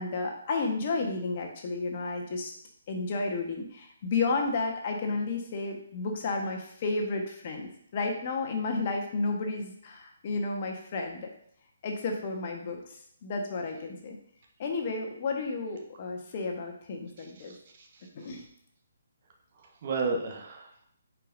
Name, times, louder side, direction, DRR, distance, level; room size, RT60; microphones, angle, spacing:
voice 1, 0.0-2.5 2.9-11.3 11.8-12.8 13.2-14.2 14.6-17.5 18.1-18.4, left 3 dB, 40° left, 2 dB, 1.3 m, -32 dB
voice 2, 17.2-18.3 19.6-20.8, right 3 dB, 45° right, 1 dB, 1.3 m, -35 dB
9.0 x 4.8 x 2.7 m, 0.67 s
figure-of-eight pair, 140°, 0 cm